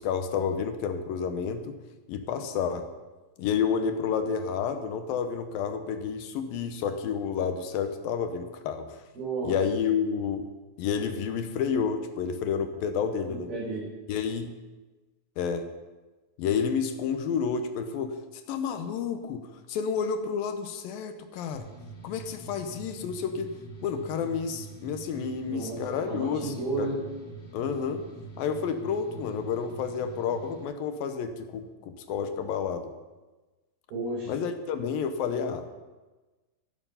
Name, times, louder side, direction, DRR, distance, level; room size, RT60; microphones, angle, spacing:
voice 1, 0.0-1.8 2.1-2.9 3.4-9.0 9.4-10.5 10.8-13.5 14.1-14.5 15.4-15.7 16.4-18.2 18.5-21.6 22.0-23.5 23.8-27.0 27.5-28.1 28.4-32.9 34.3-35.8, left 6 dB, 80° left, 8 dB, 2.7 m, -30 dB
voice 2, 9.1-9.6 13.3-13.9 25.5-27.0 33.9-34.3, right 3 dB, 80° right, -10 dB, 7.2 m, -33 dB
sound 1, 21.5-30.6, right 2 dB, 50° left, 5.8 m, -45 dB
13.5 x 12.0 x 5.7 m, 1.2 s
omnidirectional pair, 4.2 m